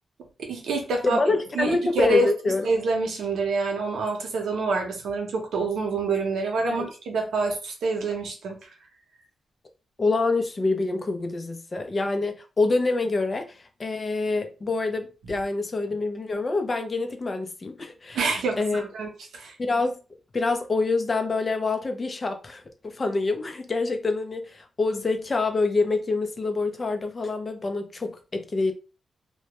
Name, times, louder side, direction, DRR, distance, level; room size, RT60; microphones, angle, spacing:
voice 1, 0.4-1.2 1.5-2.3 2.6-8.6 18.1-19.5, right 3 dB, 90° right, 0.7 m, -27 dB
voice 2, 1.0-2.7 6.7-6.9 10.0-18.2 18.6-18.8 19.6-20.0 20.3-28.7, left 3 dB, 35° left, 0.5 m, -26 dB
2.2 x 2.1 x 2.9 m
cardioid pair, 100°, 0 cm